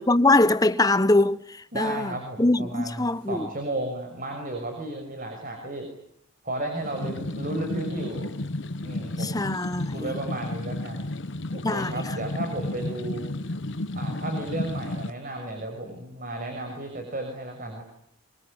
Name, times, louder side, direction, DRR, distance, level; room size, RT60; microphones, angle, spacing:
voice 1, 0.0-1.4 1.8-2.1 2.4-3.5 9.2-10.1 11.6-11.9, left 2 dB, 15° left, 1.1 m, -22 dB
voice 2, 1.7-5.9 6.4-8.3 8.8-9.3 9.9-11.1 11.5-13.2 13.9-17.8, right 1 dB, 40° right, 6.2 m, -33 dB
sound 1, 6.8-15.1, left 1 dB, 60° left, 1.1 m, -32 dB
25.0 x 23.5 x 9.9 m
head